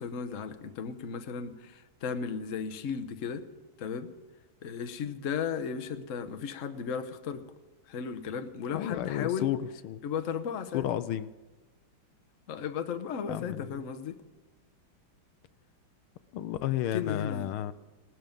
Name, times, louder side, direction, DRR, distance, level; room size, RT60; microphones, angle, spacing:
voice 1, 0.0-3.4 3.8-4.1 4.6-7.4 7.9-9.5 10.0-10.8 12.5-14.2 16.9-17.5, left 6 dB, 50° left, 9 dB, 1.1 m, -35 dB
voice 2, 8.7-9.6 9.8-10.0 10.7-11.3 13.3-13.7 16.3-17.7, left 12 dB, 80° left, 13 dB, 1.5 m, -31 dB
18.5 x 13.0 x 5.3 m, 1.2 s
omnidirectional pair, 2.3 m